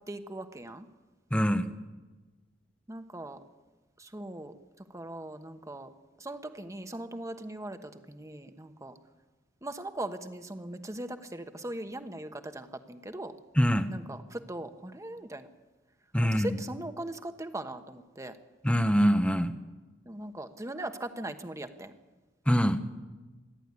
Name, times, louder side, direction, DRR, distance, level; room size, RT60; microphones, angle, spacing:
voice 1, 0.1-0.9 2.9-3.4 4.0-4.5 4.9-5.9 6.2-8.9 9.6-13.3 13.9-15.5 16.3-18.3 20.1-21.9, right 1 dB, 15° right, 8 dB, 1.2 m, -39 dB
voice 2, 1.3-1.7 13.6-13.9 16.1-16.6 18.6-19.5 22.5-22.8, equal, 5° left, 9 dB, 1.0 m, -24 dB
26.5 x 11.5 x 9.8 m, 1.2 s
head